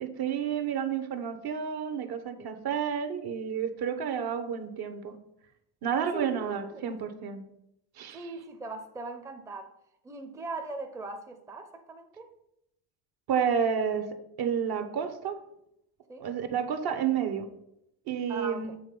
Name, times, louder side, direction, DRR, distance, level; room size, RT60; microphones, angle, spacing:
voice 1, 0.0-5.2 5.8-7.5 8.0-8.2 13.3-15.3 16.2-17.5 18.1-18.7, right 7 dB, 50° right, 9 dB, 0.9 m, -30 dB
voice 2, 8.1-9.7 10.0-12.4 16.1-16.3 18.3-18.8, right 3 dB, 5° right, 5 dB, 0.6 m, -40 dB
7.3 x 3.1 x 5.2 m, 0.80 s
supercardioid pair, 85°, 49 cm